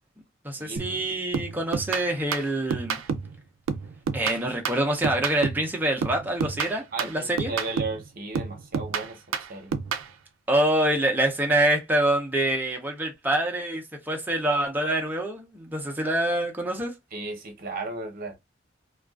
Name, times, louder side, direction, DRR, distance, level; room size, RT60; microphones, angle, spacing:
voice 1, 0.4-3.0 4.1-6.8 7.1-7.5 10.5-16.9, right 1 dB, 10° right, 0.5 m, -25 dB
sound 1, 0.8-1.0 1.3-3.4 3.7-5.7 6.0-8.0 8.3-10.1, right 6 dB, 85° right, 0.3 m, -30 dB
voice 2, 6.9-9.2 9.5-9.7 17.1-18.3, right 3 dB, 45° right, 0.8 m, -35 dB
2.3 x 2.3 x 2.3 m
head